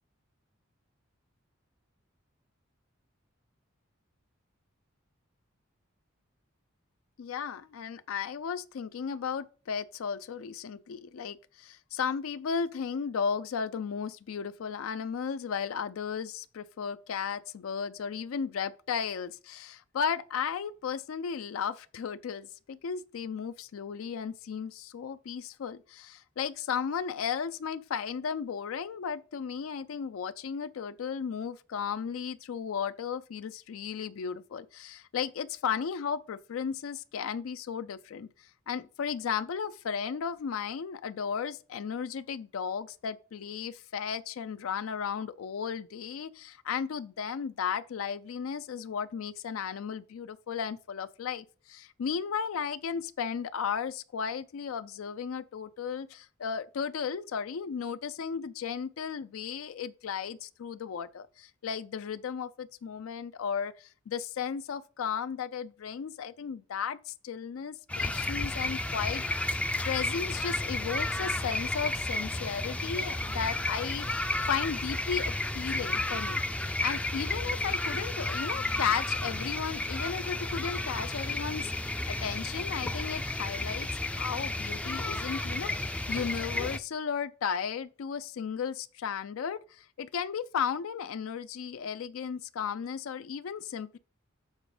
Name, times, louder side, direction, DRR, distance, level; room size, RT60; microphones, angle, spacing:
voice 1, 7.2-38.3 38.7-76.4 76.8-94.0, left 7 dB, 85° left, 0.4 m, -35 dB
sound 1, 67.9-86.8, left 2 dB, 5° left, 0.3 m, -32 dB
7.3 x 4.2 x 4.9 m
head